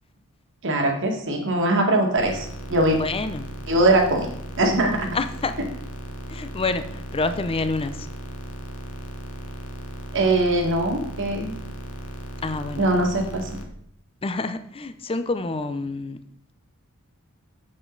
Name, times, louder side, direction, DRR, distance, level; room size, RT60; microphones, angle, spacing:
voice 1, 0.6-3.0 3.7-4.3 4.6-5.2 10.1-11.5 12.8-13.5, right 1 dB, 60° right, 3 dB, 1.8 m, -21 dB
sound 1, 2.2-13.6, equal, 70° left, 1.2 m, -36 dB
voice 2, 2.9-3.5 5.1-5.5 6.3-8.1 12.4-12.9 14.2-16.2, left 3 dB, 25° left, 11 dB, 0.6 m, -27 dB
7.9 x 7.5 x 4.0 m, 0.67 s
head